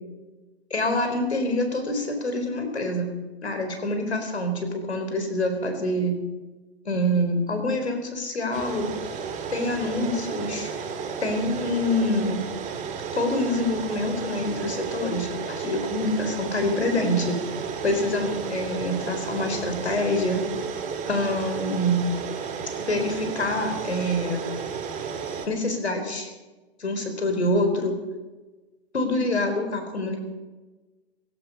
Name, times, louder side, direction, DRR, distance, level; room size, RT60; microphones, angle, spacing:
voice 1, 0.7-3.1 3.4-6.2 6.8-8.9 9.5-10.7 11.2-12.4 13.1-17.4 17.8-20.4 21.1-22.1 22.8-24.4 25.5-26.3 26.8-28.0 28.9-30.2, left 1 dB, 85° left, 6 dB, 4.3 m, -26 dB
sound 1, 8.5-25.5, right 6 dB, 25° right, 2.1 m, -33 dB
16.5 x 16.0 x 5.4 m, 1.2 s
hypercardioid pair, 120°, 32 cm